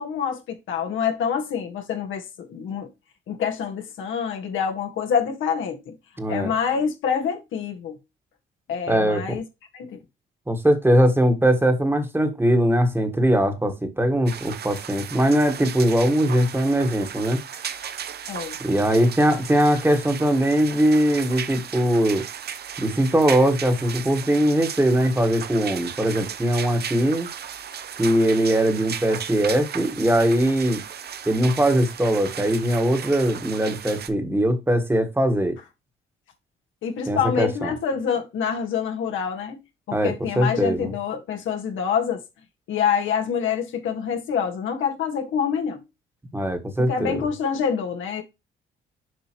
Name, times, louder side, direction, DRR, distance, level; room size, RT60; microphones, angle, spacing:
voice 1, 0.0-2.9 3.3-5.9 6.3-8.0 8.7-9.4 9.7-10.0 18.3-18.6 36.8-42.2 42.7-45.8 46.9-48.2, left 7 dB, 80° left, 1.7 m, -26 dB
voice 2, 6.2-6.5 8.9-9.4 10.5-17.4 18.6-22.2 22.8-27.3 28.0-30.8 31.2-35.6 37.1-37.7 39.9-40.9 46.3-47.2, right 1 dB, 10° right, 1.5 m, -21 dB
sound 1, 14.3-34.1, right 8 dB, 55° right, 0.8 m, -35 dB
7.7 x 5.2 x 3.0 m
cardioid pair, 90°, 20 cm